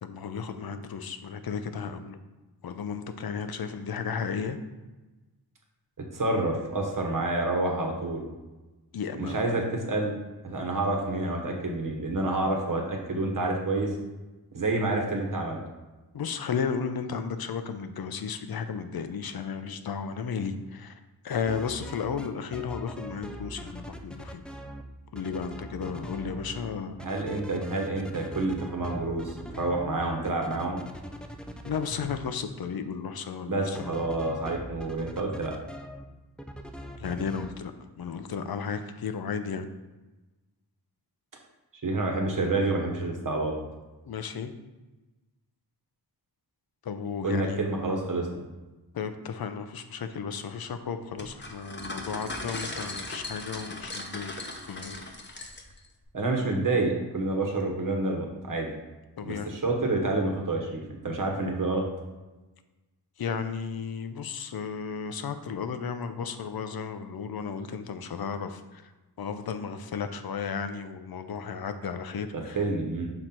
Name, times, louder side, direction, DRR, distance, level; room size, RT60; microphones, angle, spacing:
voice 1, 0.0-2.2 2.6-4.6 8.9-9.5 16.1-24.4 25.1-27.0 31.6-33.9 37.0-37.7 38.0-39.7 44.1-44.5 46.8-47.6 48.9-54.4 54.7-55.0 59.2-59.5 63.2-68.9 69.2-72.6, left 6 dB, 60° left, 9 dB, 0.6 m, -34 dB
voice 2, 6.1-8.3 9.2-10.1 10.4-14.0 14.5-15.6 27.0-30.8 33.5-35.5 41.8-43.5 47.2-48.4 56.1-58.7 59.2-61.8 72.3-73.1, right 2 dB, 50° right, 1 dB, 1.2 m, -28 dB
sound 1, 21.5-22.3 22.5-24.8 25.1-26.7 27.0-32.1 33.7-36.0 36.4-37.5, equal, ahead, 0.4 m, -41 dB
sound 2, 51.2-55.9, left 2 dB, 25° left, 0.8 m, -38 dB
6.3 x 3.8 x 4.3 m, 1.1 s
wide cardioid pair, 110°, 41 cm